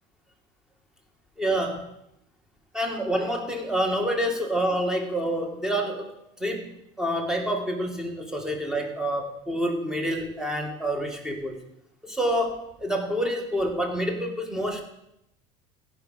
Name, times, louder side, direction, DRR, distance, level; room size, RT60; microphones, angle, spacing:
voice 1, 1.4-1.9 2.7-6.1 6.4-6.7 7.0-11.6 12.0-14.8, equal, 5° right, 2 dB, 1.8 m, -27 dB
16.5 x 5.6 x 5.3 m, 0.82 s
cardioid pair, 135°, 18 cm